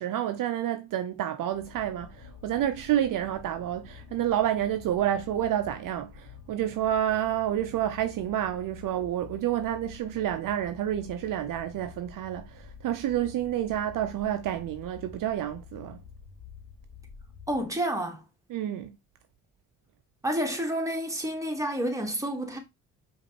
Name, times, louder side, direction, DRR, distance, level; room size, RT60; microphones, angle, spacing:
voice 1, 0.0-16.0 18.5-18.9, right 11 dB, 60° right, 0.6 m, -29 dB
sound 1, 1.5-17.8, left 6 dB, 50° left, 1.2 m, -49 dB
voice 2, 17.5-18.2 20.2-22.6, right 1 dB, 10° right, 1.3 m, -29 dB
5.0 x 2.6 x 2.9 m
hypercardioid pair, 50°, 37 cm